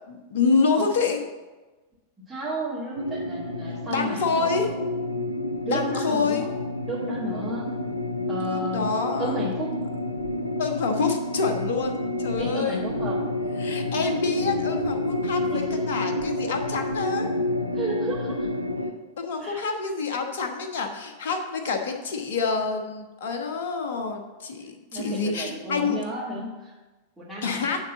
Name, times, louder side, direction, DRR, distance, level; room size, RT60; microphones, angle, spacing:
voice 1, 0.1-1.2 3.9-4.7 5.6-6.5 8.4-9.3 10.6-12.9 13.6-15.6 15.9-17.3 19.2-26.0 27.4-27.8, left 4 dB, 55° left, 4 dB, 1.1 m, -27 dB
voice 2, 2.3-4.8 5.6-6.5 6.9-7.7 8.3-8.9 9.2-9.8 12.4-13.2 15.5-15.8 17.7-18.5 19.4-19.6 24.9-26.7 27.2-27.7, right 1 dB, 10° right, -12 dB, 2.5 m, -33 dB
sound 1, 2.9-18.9, left 1 dB, 90° left, 0.6 m, -29 dB
9.4 x 4.1 x 7.0 m, 1.2 s
figure-of-eight pair, 90°, 0 cm